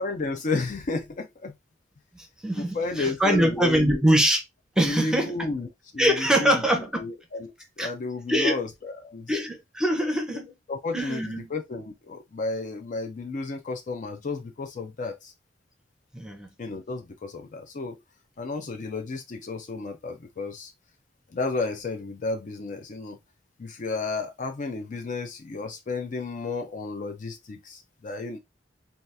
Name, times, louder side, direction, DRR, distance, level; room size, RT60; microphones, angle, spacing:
voice 1, 0.0-1.5 2.6-4.0 4.8-5.7 5.9-6.6 7.0-9.3 10.7-15.3 16.6-18.0 18.4-20.7 21.3-23.2 23.6-28.4, left 3 dB, 45° left, 0.4 m, -32 dB
voice 2, 2.1-4.4 4.8-5.5 6.0-7.0 7.8-7.9 8.3-8.6 9.3-10.5 10.9-11.5 16.1-16.5, right 1 dB, 5° right, 0.6 m, -23 dB
2.7 x 2.3 x 3.2 m
head